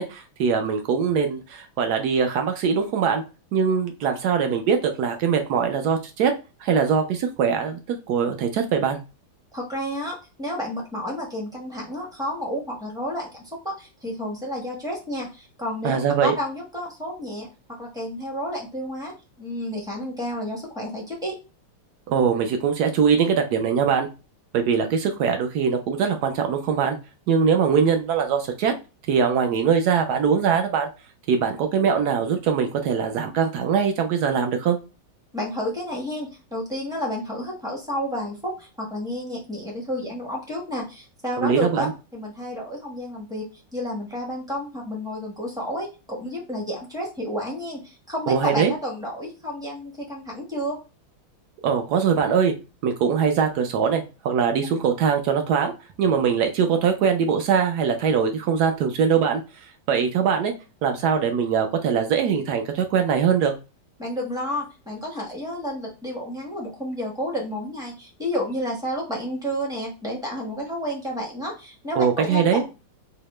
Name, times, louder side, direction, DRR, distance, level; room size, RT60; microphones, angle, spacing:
voice 1, 0.0-3.2 3.5-6.3 6.6-9.0 15.8-16.3 22.1-24.1 24.5-27.0 27.3-28.7 29.1-30.9 31.3-34.8 41.4-41.9 48.3-48.7 51.6-52.5 52.8-55.7 56.0-59.4 59.9-60.5 60.8-63.5 72.0-72.6, right 6 dB, 80° right, 5 dB, 0.8 m, -22 dB
voice 2, 9.5-21.4 35.3-43.5 43.7-50.8 64.0-72.7, equal, 5° right, -1 dB, 0.3 m, -31 dB
4.8 x 2.1 x 3.1 m, 0.29 s
omnidirectional pair, 2.4 m